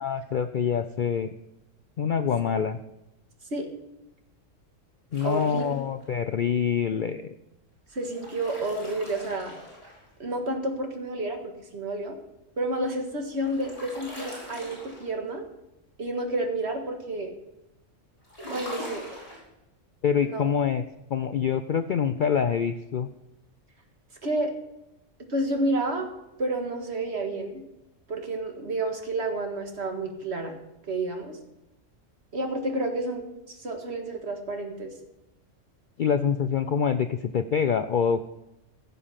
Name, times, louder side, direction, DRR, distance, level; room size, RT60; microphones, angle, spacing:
voice 1, 0.0-1.3 2.0-2.8 5.1-7.3 20.0-20.8 21.1-23.1 36.0-38.2, left 7 dB, 60° left, 10 dB, 0.5 m, -25 dB
sound 1, 5.1-6.0 7.9-10.3 13.0-15.3 18.2-19.4, left 1 dB, 25° left, 5.0 m, -42 dB
voice 2, 5.2-5.7 7.9-9.6 10.2-12.2 12.6-15.4 16.0-17.3 18.5-19.1 20.2-20.5 24.2-24.5 25.2-26.1 26.4-27.6 28.1-30.5 30.9-31.4 32.3-34.9, right 2 dB, 55° right, 3 dB, 2.0 m, -30 dB
16.0 x 6.9 x 5.7 m, 0.90 s
omnidirectional pair, 1.3 m